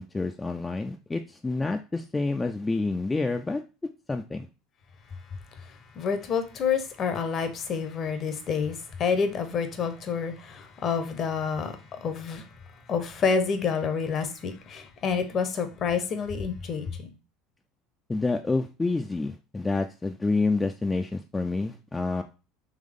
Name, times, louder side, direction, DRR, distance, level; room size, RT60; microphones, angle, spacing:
voice 1, 0.0-3.6 4.1-4.5 18.1-22.2, left 3 dB, 15° left, 0.3 m, -28 dB
voice 2, 5.6-12.5 12.9-17.1, left 6 dB, 45° left, 0.8 m, -28 dB
3.7 x 3.1 x 3.5 m
hypercardioid pair, 80°, 0 cm